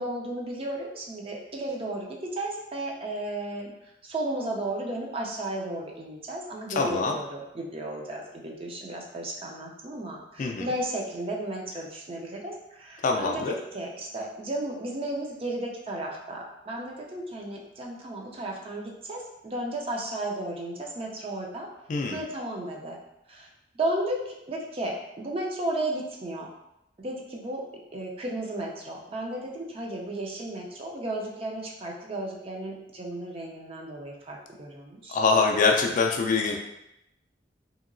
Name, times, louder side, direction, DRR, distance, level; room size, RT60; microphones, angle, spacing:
voice 1, 0.0-3.7 4.0-13.4 13.7-21.7 22.1-23.0 23.3-23.5 23.8-26.5 27.0-27.6 27.9-35.2, right 1 dB, 30° right, -1 dB, 0.5 m, -34 dB
voice 2, 6.8-7.2 10.4-10.7 13.0-13.5 21.9-22.2 35.1-36.6, left 4 dB, 45° left, 2 dB, 0.3 m, -24 dB
2.8 x 2.7 x 2.5 m, 0.85 s
head